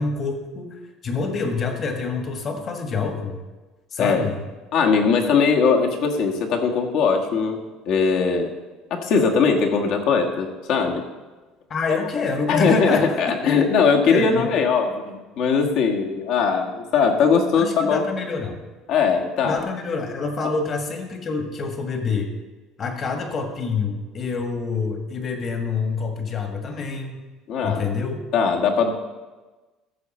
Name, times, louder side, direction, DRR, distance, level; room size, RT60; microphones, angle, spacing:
voice 1, 0.0-3.4 3.9-4.4 11.7-13.3 14.0-14.5 17.6-18.6 19.4-22.3 22.8-27.2 27.6-28.2, left 4 dB, 35° left, 4 dB, 1.6 m, -27 dB
voice 2, 4.0-4.3 4.7-8.5 8.9-11.0 12.5-18.1 18.9-19.6 27.5-27.9 28.3-28.9, left 5 dB, 60° left, 2 dB, 1.5 m, -20 dB
14.0 x 6.8 x 4.3 m, 1.2 s
cardioid pair, 130°, 0 cm